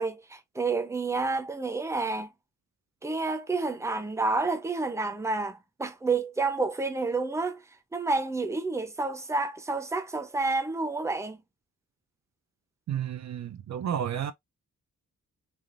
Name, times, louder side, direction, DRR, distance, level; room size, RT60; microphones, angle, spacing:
voice 1, 0.0-2.3 3.0-7.6 7.9-11.4, right 3 dB, 10° right, 0.6 m, -29 dB
voice 2, 12.9-14.3, right 9 dB, 60° right, 0.5 m, -31 dB
3.4 x 2.4 x 2.4 m
cardioid pair, 95°, 31 cm